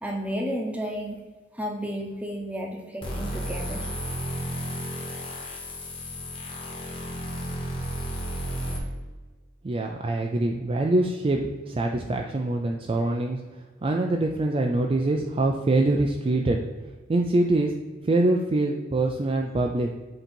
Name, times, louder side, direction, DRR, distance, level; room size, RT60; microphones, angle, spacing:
voice 1, 0.0-1.2 1.5-3.9, equal, 5° right, 1 dB, 0.8 m, -32 dB
sound 1, 3.0-8.8, equal, 25° left, 1.4 m, -33 dB
voice 2, 9.6-11.4 11.7-13.4 13.8-16.6 17.1-17.7 18.0-19.9, right 2 dB, 30° right, 2 dB, 0.4 m, -24 dB
7.9 x 2.9 x 4.4 m, 1.3 s
head